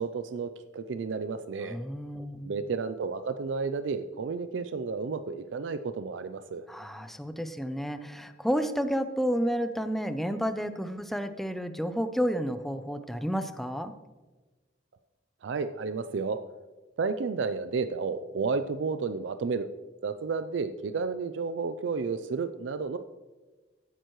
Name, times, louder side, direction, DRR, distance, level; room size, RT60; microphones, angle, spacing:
voice 1, 0.0-1.8 2.4-6.6 15.4-16.4 17.0-19.7 20.0-23.0, right 4 dB, 80° right, 11 dB, 0.4 m, -32 dB
voice 2, 1.6-2.5 6.7-13.9, equal, ahead, 10 dB, 0.5 m, -31 dB
15.5 x 9.1 x 3.1 m, 1.2 s
head